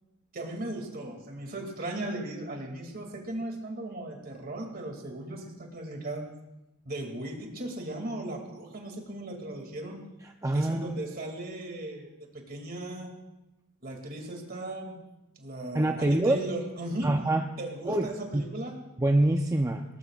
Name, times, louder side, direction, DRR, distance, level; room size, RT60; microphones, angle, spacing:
voice 1, 0.3-6.2 6.8-10.0 10.5-13.1 13.8-15.0 15.4-17.1 17.6-18.8, right 1 dB, 45° right, 2 dB, 2.5 m, -37 dB
voice 2, 10.4-10.9 15.7-16.4 17.0-17.4 17.9-18.5 19.0-19.8, right 1 dB, 15° right, 3 dB, 0.5 m, -25 dB
20.0 x 18.5 x 2.4 m, 0.96 s
head